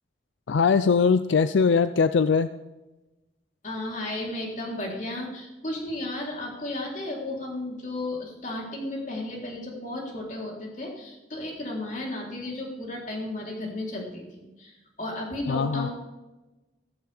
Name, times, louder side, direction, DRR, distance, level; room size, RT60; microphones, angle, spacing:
voice 1, 0.5-2.5 15.5-15.9, left 5 dB, 85° left, 12 dB, 0.4 m, -21 dB
voice 2, 3.6-15.9, left 1 dB, 45° left, -2 dB, 3.5 m, -34 dB
15.0 x 14.0 x 3.5 m, 1.1 s
head